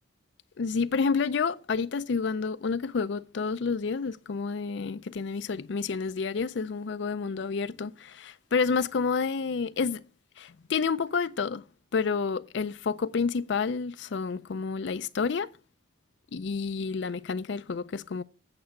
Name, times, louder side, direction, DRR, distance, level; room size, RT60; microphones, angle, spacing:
voice 1, 0.6-10.0 10.4-11.6 11.9-15.5 16.3-18.2, left 5 dB, 60° left, 0.4 m, -29 dB
8.7 x 6.9 x 5.8 m
head